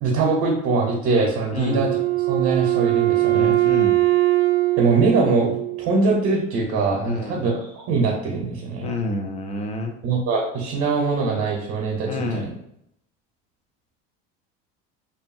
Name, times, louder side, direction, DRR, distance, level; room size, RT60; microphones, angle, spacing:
voice 1, 0.0-2.0 2.3-3.6 4.8-8.9 10.0-12.5, right 3 dB, 55° right, -1 dB, 0.8 m, -22 dB
Wind instrument woodwind instrument, 1.7-6.2, right 17 dB, 40° right, 0.4 m, -21 dB
voice 2, 3.3-4.0 7.1-7.5 8.8-9.9 12.1-12.5, left 2 dB, 20° left, 4 dB, 0.4 m, -28 dB
2.8 x 2.5 x 2.5 m, 0.76 s
supercardioid pair, 105°, 32 cm